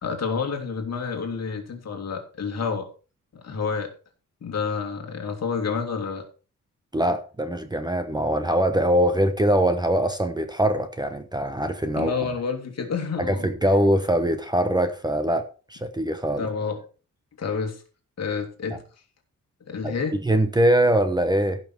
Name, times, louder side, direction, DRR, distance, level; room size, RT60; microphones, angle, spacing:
voice 1, 0.0-2.9 3.3-3.9 4.4-6.2 11.9-13.5 16.4-16.8 17.4-17.8 18.2-18.8 19.7-20.2, left 5 dB, 55° left, 3 dB, 2.6 m, -29 dB
voice 2, 6.9-12.1 13.2-15.4 15.7-16.5 19.8-19.9 20.2-21.6, right 1 dB, 15° right, 8 dB, 0.9 m, -22 dB
15.5 x 6.0 x 4.5 m, 0.35 s
wide cardioid pair, 155°, 32 cm